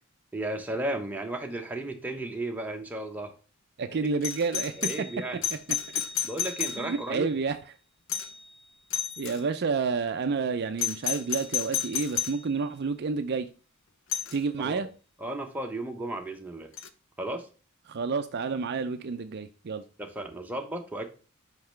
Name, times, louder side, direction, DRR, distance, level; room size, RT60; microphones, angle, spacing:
voice 1, 0.3-3.3 3.9-4.1 4.8-5.4 6.2-7.3 14.6-14.9 15.2-16.7 17.2-17.5 20.0-21.1, right 1 dB, 10° right, 2 dB, 1.0 m, -34 dB
voice 2, 3.8-5.1 5.5-6.0 6.8-7.6 9.2-13.5 14.3-14.9 17.9-19.8, right 4 dB, 50° right, 9 dB, 0.5 m, -30 dB
Doorbell, 4.2-7.2 8.1-8.5 8.9-9.4 10.8-12.4 14.1-14.4 16.8-16.9, left 9 dB, 65° left, 0.6 m, -32 dB
5.7 x 5.4 x 3.2 m, 0.36 s
head